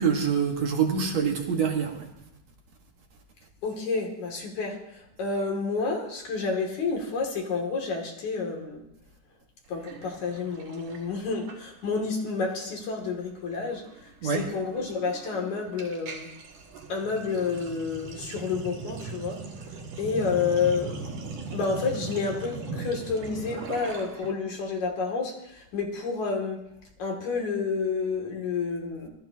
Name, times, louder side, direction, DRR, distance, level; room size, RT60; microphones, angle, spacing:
voice 1, 0.0-2.1 14.2-14.5, right 6 dB, 60° right, 2.6 m, -25 dB
voice 2, 3.6-4.8 5.2-8.8 9.7-13.8 14.2-16.3 16.9-19.4 20.0-21.0 21.5-26.6 27.0-29.1, left 4 dB, 60° left, 3.8 m, -29 dB
Sink (filling or washing), 9.8-12.1 12.3-12.6 12.9-24.3, right 4 dB, 75° right, 4.0 m, -40 dB
26.0 x 19.5 x 2.9 m
omnidirectional pair, 3.8 m